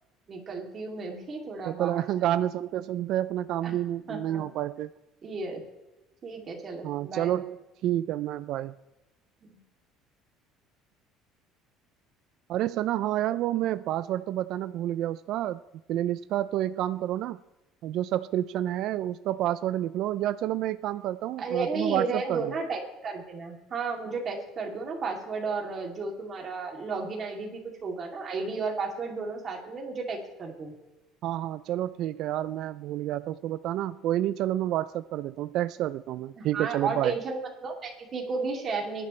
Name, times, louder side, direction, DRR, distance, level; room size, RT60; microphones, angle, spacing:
voice 1, 0.3-2.1 3.6-3.8 4.1-4.4 5.2-5.6 6.2-7.4 9.4-9.6 21.4-30.7 36.4-39.1, right 4 dB, 30° right, 0 dB, 2.8 m, -33 dB
voice 2, 1.7-4.9 6.8-8.7 12.5-15.6 15.9-17.4 17.8-22.5 31.2-37.1, right 13 dB, 55° right, 14 dB, 0.4 m, -29 dB
22.0 x 10.5 x 3.2 m, 1.0 s
cardioid pair, 150°, 0 cm